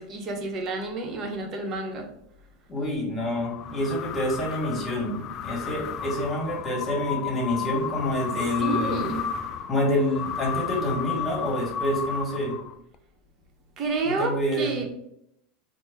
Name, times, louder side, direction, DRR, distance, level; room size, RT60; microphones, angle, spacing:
voice 1, 0.0-2.1 8.6-9.2 13.8-14.8, right 3 dB, 40° right, 2 dB, 0.9 m, -29 dB
voice 2, 2.7-9.1 9.7-12.6 14.0-14.8, left 1 dB, 25° left, -1 dB, 1.3 m, -27 dB
sound 1, 3.2-12.9, left 8 dB, 45° left, 0.3 m, -33 dB
4.2 x 2.1 x 3.4 m, 0.76 s
hypercardioid pair, 95°, 0 cm